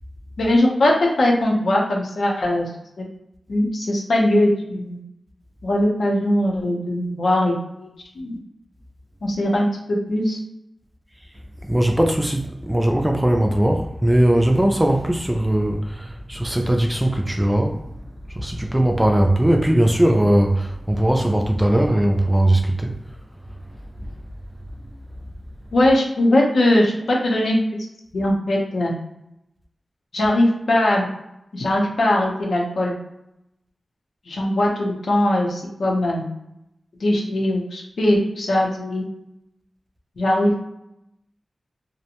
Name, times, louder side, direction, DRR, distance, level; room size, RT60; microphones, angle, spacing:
voice 1, 0.4-2.7 3.0-3.1 3.5-5.0 5.6-7.9 8.1-8.4 9.2-10.4 25.7-27.6 28.1-28.9 30.1-31.1 31.5-33.0 34.3-36.2 37.0-39.1 40.2-40.6, left 1 dB, 80° left, 0.7 m, -20 dB
voice 2, 11.6-17.9 18.3-23.0, right 1 dB, 10° right, 0.3 m, -19 dB
2.5 x 2.1 x 2.8 m
wide cardioid pair, 130°, 0 cm